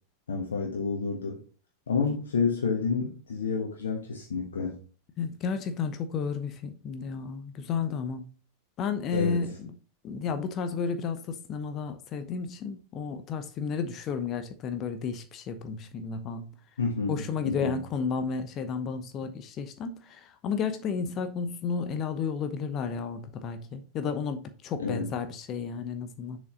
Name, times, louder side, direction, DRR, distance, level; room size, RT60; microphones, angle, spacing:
voice 1, 0.3-1.4 1.9-4.8 9.1-9.4 16.8-17.8 24.8-25.1, left 5 dB, 65° left, 1.3 m, -29 dB
voice 2, 5.2-8.3 8.8-9.7 10.0-16.5 17.1-26.4, left 5 dB, 35° left, 0.8 m, -32 dB
7.0 x 5.1 x 3.9 m
figure-of-eight pair, 90°, 0 cm